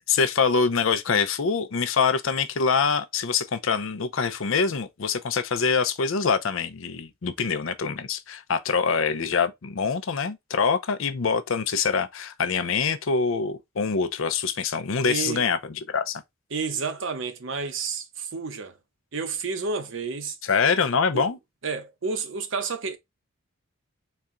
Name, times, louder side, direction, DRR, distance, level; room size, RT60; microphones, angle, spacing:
voice 1, 0.1-16.2 20.5-21.4, left 5 dB, 70° left, 0.6 m, -25 dB
voice 2, 15.0-15.4 16.5-18.8 19.1-20.4 21.1-21.3 21.6-23.0, right 4 dB, 60° right, 0.7 m, -30 dB
4.2 x 2.2 x 3.6 m
head